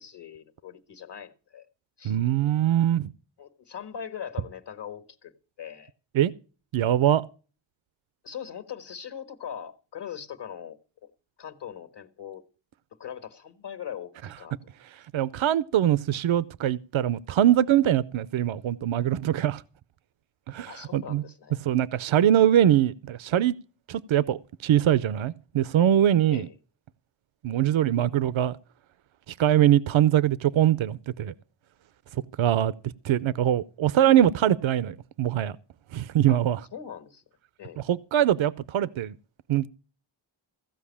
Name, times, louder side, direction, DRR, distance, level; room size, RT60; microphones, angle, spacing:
voice 1, 0.0-1.7 2.0-2.2 3.4-5.3 5.6-5.9 8.2-11.1 11.4-12.4 13.0-14.8 20.7-21.6 26.3-26.5 32.1-32.2 36.3-36.4 36.7-37.2 37.6-37.8, left 8 dB, 60° left, 1.6 m, -41 dB
voice 2, 2.0-3.1 6.1-6.3 6.7-7.2 15.1-19.6 20.5-21.2 21.6-23.5 23.9-26.5 27.4-28.6 29.4-31.3 32.4-32.7 33.0-35.6 35.9-36.6 37.8-39.1 39.5-39.7, right 11 dB, 85° right, 0.6 m, -22 dB
15.5 x 5.4 x 8.4 m
cardioid pair, 70°, 46 cm